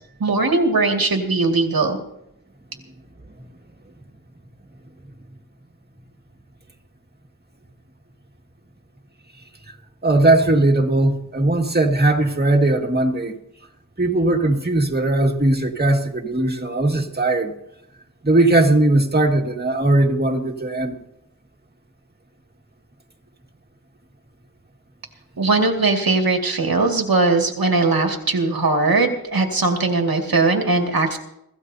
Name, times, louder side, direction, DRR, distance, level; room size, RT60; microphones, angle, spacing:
voice 1, 0.2-2.0 25.4-31.2, right 3 dB, 80° right, 3 dB, 2.1 m, -19 dB
voice 2, 10.0-13.4 14.0-17.5 18.2-21.0, right 2 dB, 30° right, 2 dB, 1.9 m, -18 dB
24.5 x 15.0 x 2.7 m, 0.81 s
wide cardioid pair, 80°, 35 cm